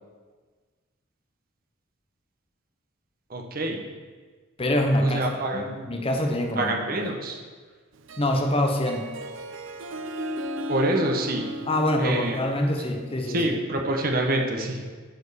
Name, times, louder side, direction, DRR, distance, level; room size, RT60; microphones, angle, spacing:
voice 1, 3.3-3.8 5.0-5.9 6.5-7.4 10.7-11.5 12.0-12.4 13.3-14.8, right 1 dB, 45° right, 1 dB, 1.1 m, -26 dB
voice 2, 4.6-5.2 5.5-6.8 8.2-9.1 11.7-13.4, left 1 dB, 25° left, 4 dB, 0.8 m, -25 dB
Harp, 8.0-13.5, equal, 65° right, 0.6 m, -36 dB
9.4 x 4.4 x 7.0 m, 1.5 s
head